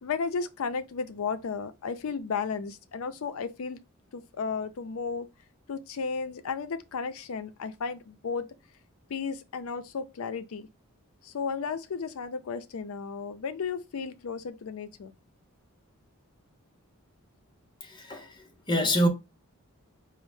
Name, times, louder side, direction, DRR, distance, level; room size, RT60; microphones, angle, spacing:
voice 1, 0.0-3.8 4.1-5.3 5.7-8.5 9.1-10.7 11.2-15.1, left 5 dB, 75° left, 0.4 m, -34 dB
voice 2, 17.8-19.1, equal, 20° left, 0.6 m, -27 dB
4.2 x 2.0 x 3.1 m
head